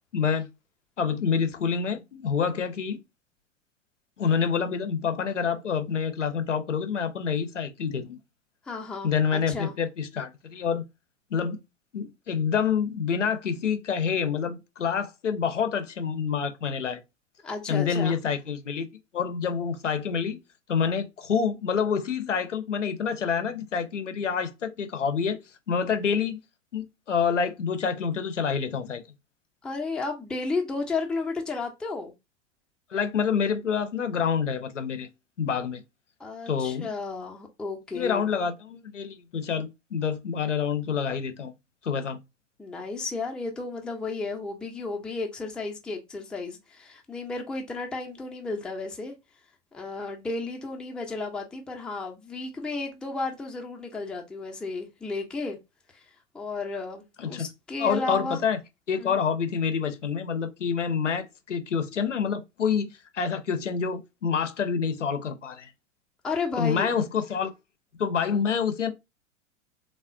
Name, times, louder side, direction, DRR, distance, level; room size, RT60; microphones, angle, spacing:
voice 1, 0.1-0.5 1.0-3.0 4.2-8.2 9.0-10.8 11.3-11.6 11.9-17.0 17.7-18.9 19.1-20.4 20.7-25.4 25.7-26.4 26.7-29.0 32.9-35.1 35.4-35.8 36.5-36.9 37.9-41.5 41.8-42.2 57.2-57.5 57.8-58.6 58.9-65.7 66.6-67.5 68.0-68.9, left 6 dB, 90° left, 0.6 m, -27 dB
voice 2, 8.7-9.7 17.4-18.2 29.6-32.1 36.2-38.3 42.6-49.1 49.7-55.6 56.3-58.4 59.0-59.2 66.2-66.9, left 3 dB, 5° left, 0.4 m, -33 dB
3.5 x 2.1 x 2.4 m
figure-of-eight pair, 90°, 36 cm